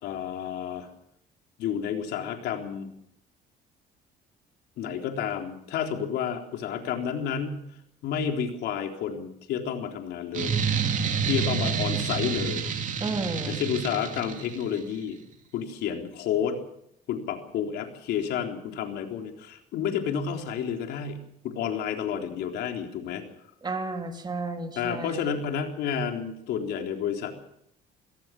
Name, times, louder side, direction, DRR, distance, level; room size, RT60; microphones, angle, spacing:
voice 1, 0.0-0.9 1.6-2.9 4.8-7.6 8.0-10.6 11.3-12.6 13.5-15.2 15.5-16.6 17.1-23.2 24.8-27.3, left 8 dB, 80° left, 4 dB, 3.8 m, -30 dB
sound 1, 10.3-14.8, right 6 dB, 50° right, 3.1 m, -28 dB
voice 2, 13.0-13.6 23.6-25.4, right 3 dB, 25° right, 4 dB, 3.3 m, -32 dB
26.5 x 18.0 x 6.2 m, 0.75 s
cardioid pair, 110°, 17 cm